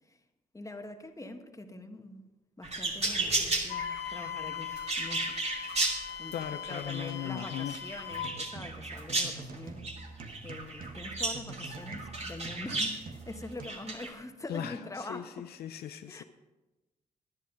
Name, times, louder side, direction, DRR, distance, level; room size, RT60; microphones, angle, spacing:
voice 1, 0.5-2.2 2.6-4.7 5.0-5.4 5.8-6.3 6.7-9.9 10.4-15.5 16.1-16.2, left 2 dB, 20° left, 6 dB, 1.5 m, -44 dB
sound 1, 2.6-13.0 13.6-14.1, right 2 dB, 40° right, 2.7 m, -34 dB
Wind instrument woodwind instrument, 3.7-8.3, left 8 dB, 90° left, 1.1 m, -40 dB
voice 2, 6.3-7.8 14.5-16.2, left 10 dB, 70° left, 9 dB, 0.5 m, -38 dB
sound 2, 8.1-13.7, right 3 dB, 55° right, 1.4 m, -46 dB
11.5 x 10.5 x 5.3 m, 1.1 s
supercardioid pair, 45°, 17 cm